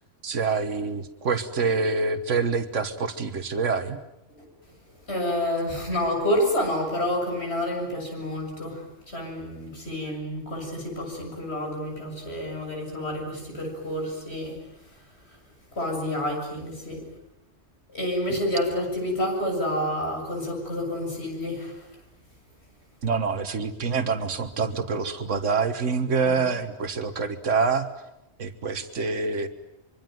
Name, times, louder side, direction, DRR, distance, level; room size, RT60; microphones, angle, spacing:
voice 1, 0.2-4.0 23.0-27.9 28.4-29.5, right 4 dB, 90° right, 8 dB, 1.8 m, -26 dB
voice 2, 5.1-14.6 15.3-15.4 15.7-17.0 17.9-21.9 26.2-26.5, left 1 dB, 60° left, 1 dB, 7.8 m, -29 dB
25.0 x 24.5 x 9.3 m, 0.88 s
omnidirectional pair, 1.2 m